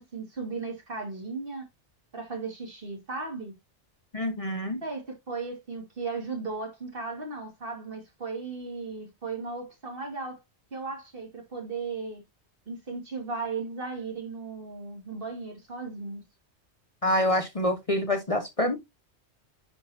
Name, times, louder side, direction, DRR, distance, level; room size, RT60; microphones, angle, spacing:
voice 1, 0.0-1.7 2.1-3.5 4.8-10.4 10.7-12.2 12.7-16.2, right 4 dB, 50° right, 2.4 m, -36 dB
voice 2, 4.1-4.8 17.0-18.8, left 1 dB, 35° left, 0.9 m, -26 dB
10.0 x 3.9 x 2.7 m
omnidirectional pair, 1.2 m